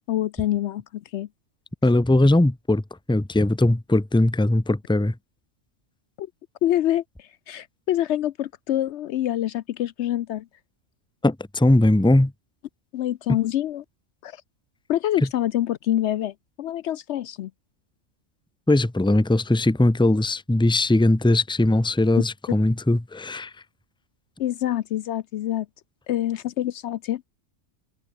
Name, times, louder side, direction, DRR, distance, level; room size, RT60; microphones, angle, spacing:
voice 1, 0.1-1.3 6.2-6.3 6.6-10.5 12.9-13.8 14.2-14.4 14.9-17.5 24.4-25.7 26.1-27.2, left 12 dB, 70° left, 0.8 m, -26 dB
voice 2, 1.8-2.8 3.1-5.1 11.2-12.3 18.7-23.5, left 1 dB, 5° left, 0.8 m, -20 dB
omnidirectional pair, 1.3 m